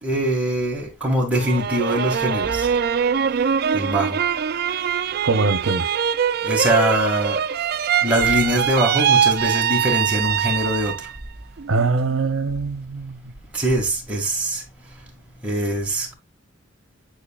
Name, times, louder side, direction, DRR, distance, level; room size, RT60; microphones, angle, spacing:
voice 1, 0.0-2.7 3.7-4.2 6.4-7.4 8.0-11.1 13.5-14.6 15.4-16.1, right 1 dB, 5° right, 2.1 m, -22 dB
sound 1, 1.3-11.2 11.6-12.3, right 8 dB, 50° right, 0.3 m, -22 dB
voice 2, 5.2-5.9 11.7-13.3, right 3 dB, 75° right, 0.8 m, -22 dB
9.5 x 4.6 x 2.4 m
head